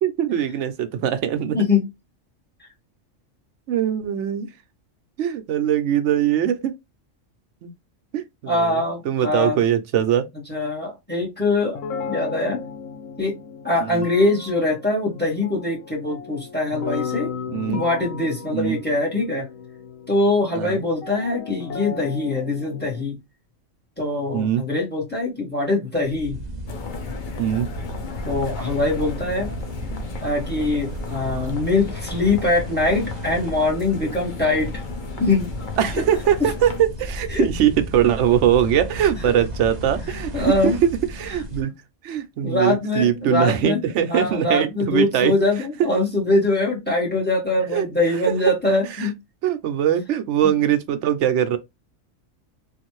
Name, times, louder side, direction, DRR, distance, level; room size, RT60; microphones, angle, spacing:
voice 1, 0.0-1.6 3.7-4.5 5.2-6.7 7.6-7.7 8.1-8.8 9.0-10.3 13.8-14.0 17.5-17.8 18.5-18.8 20.5-20.8 24.3-24.6 27.4-27.7 35.8-40.8 41.1-41.7 42.0-45.3 47.7-47.9 48.3-48.5 49.0-49.1 49.4-51.6, right 10 dB, 75° right, 0.9 m, -21 dB
voice 2, 1.5-1.8 8.5-9.6 10.5-11.8 12.1-12.6 13.2-13.4 13.6-17.3 17.7-19.5 20.1-23.2 24.0-26.4 28.2-29.5 30.2-34.7 35.2-35.5 36.4-36.5 37.3-37.5 40.3-40.8 42.4-43.8 44.1-49.1 50.4-50.5, left 2 dB, 10° left, 1.3 m, -22 dB
sound 1, 11.8-23.0, left 6 dB, 85° left, 1.0 m, -35 dB
sound 2, 26.0-41.6, equal, 40° right, 0.8 m, -34 dB
sound 3, 26.7-36.8, left 6 dB, 50° left, 0.6 m, -36 dB
3.1 x 2.5 x 3.0 m
omnidirectional pair, 1.3 m